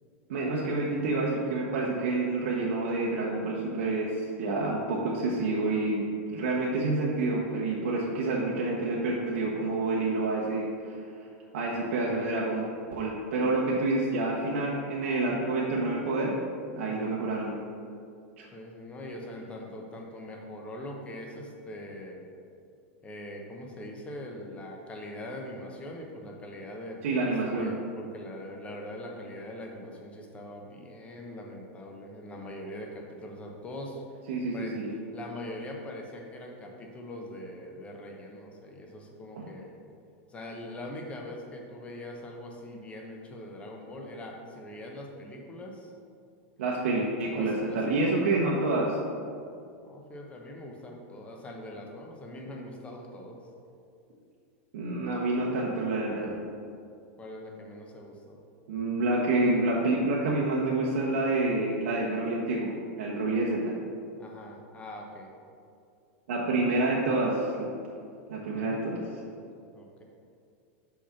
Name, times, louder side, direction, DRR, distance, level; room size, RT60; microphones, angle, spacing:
voice 1, 0.3-11.0 11.5-16.4 16.7-17.6 18.4-18.5 27.0-27.7 34.3-34.9 39.4-39.5 46.6-49.0 54.7-56.3 58.7-63.7 66.3-67.7 68.3-69.0, right 2 dB, 75° right, -4 dB, 1.0 m, -28 dB
voice 2, 18.5-22.2 23.0-34.0 34.5-34.8 35.1-39.7 40.3-45.9 46.9-48.2 49.8-53.4 57.2-58.4 64.2-65.3 68.5-68.8 69.7-70.0, left 1 dB, 15° left, 0 dB, 0.9 m, -42 dB
5.8 x 4.2 x 5.7 m, 2.4 s
supercardioid pair, 140°, 7 cm